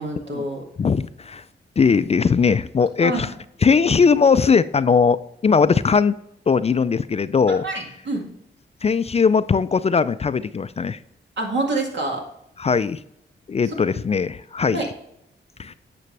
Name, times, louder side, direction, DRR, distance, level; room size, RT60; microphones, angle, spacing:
voice 1, 0.0-0.6 3.0-3.2 7.5-8.2 11.4-12.2 13.6-14.0 14.7-14.9, right 2 dB, 65° right, 1 dB, 2.2 m, -27 dB
voice 2, 0.8-1.4 1.8-3.3 3.6-6.1 6.5-7.6 8.8-11.0 12.6-13.0 13.5-14.8 15.6-15.7, left 5 dB, 35° left, 14 dB, 0.4 m, -19 dB
9.3 x 6.1 x 3.3 m, 0.78 s
cardioid pair, 70°, 20 cm